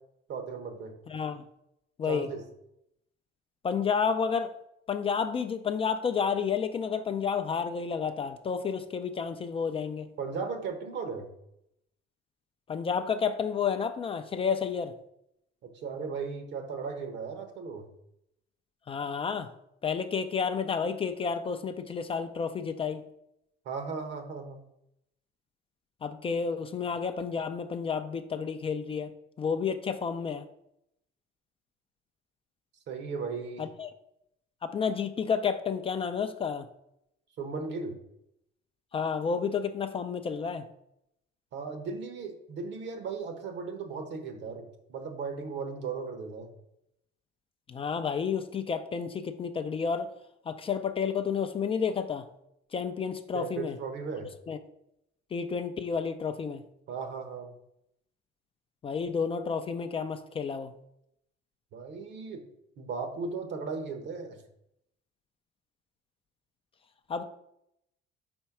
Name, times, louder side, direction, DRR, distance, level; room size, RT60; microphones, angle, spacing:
voice 1, 0.3-0.9 2.1-2.4 10.2-11.3 15.6-17.9 23.6-24.6 32.9-33.6 37.4-38.0 41.5-46.5 53.3-54.3 56.9-57.5 61.7-62.4 62.8-64.4, right 5 dB, 60° right, 6 dB, 1.2 m, -36 dB
voice 2, 1.1-1.4 2.0-2.3 3.6-4.5 4.9-10.1 12.7-14.9 18.9-19.5 19.8-23.0 26.0-29.1 29.4-30.4 33.6-33.9 34.6-36.7 38.9-40.7 47.7-50.1 50.5-52.3 52.7-53.8 54.5-54.6 55.3-56.6 58.8-60.7 67.1-67.2, left 6 dB, 25° left, 8 dB, 0.4 m, -30 dB
4.5 x 4.3 x 5.8 m, 0.79 s
cardioid pair, 130°, 21 cm